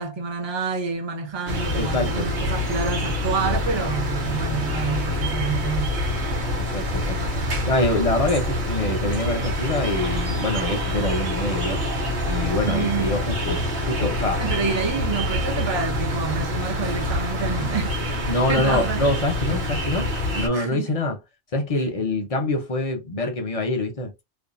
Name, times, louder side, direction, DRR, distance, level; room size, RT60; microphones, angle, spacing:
voice 1, 0.0-6.0 12.7-13.1 14.4-18.0 18.5-19.0 20.5-20.9, right 5 dB, 40° right, 0.4 m, -28 dB
sound 1, 1.5-20.5, left 1 dB, 60° right, 1.1 m, -26 dB
voice 2, 1.8-2.3 6.6-7.2 7.7-11.8 12.3-13.6 13.9-14.4 18.3-21.2 21.5-24.1, left 2 dB, 40° left, 0.5 m, -25 dB
2.6 x 2.2 x 2.5 m
omnidirectional pair, 1.2 m